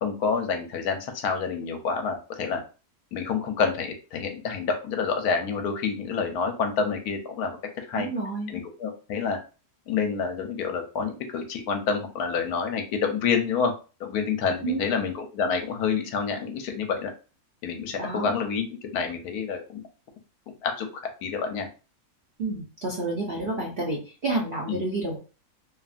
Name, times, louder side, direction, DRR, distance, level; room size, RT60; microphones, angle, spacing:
voice 1, 0.0-2.6 3.1-7.6 7.9-8.1 8.5-9.4 9.9-13.7 14.0-17.1 17.6-19.8 20.6-20.9 21.2-21.7 24.7-24.8, left 5 dB, 80° left, 5 dB, 1.1 m, -28 dB
voice 2, 7.9-8.5 14.6-14.9 18.0-18.3 22.4-25.2, right 2 dB, 55° right, -4 dB, 0.6 m, -29 dB
2.7 x 2.5 x 2.4 m, 0.34 s
omnidirectional pair, 1.6 m